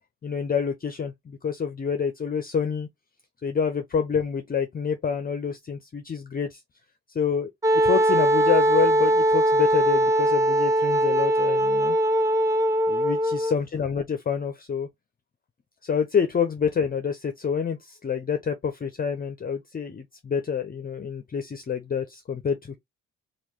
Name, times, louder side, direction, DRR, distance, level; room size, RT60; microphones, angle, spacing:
voice 1, 0.2-2.9 3.4-6.6 7.1-7.5 7.8-12.0 12.9-14.9 15.8-22.8, left 6 dB, 30° left, 0.6 m, -27 dB
Wind instrument woodwind instrument, 7.6-13.6, right 1 dB, 10° right, 0.8 m, -21 dB
3.0 x 2.4 x 3.5 m
cardioid pair, 90°, 30 cm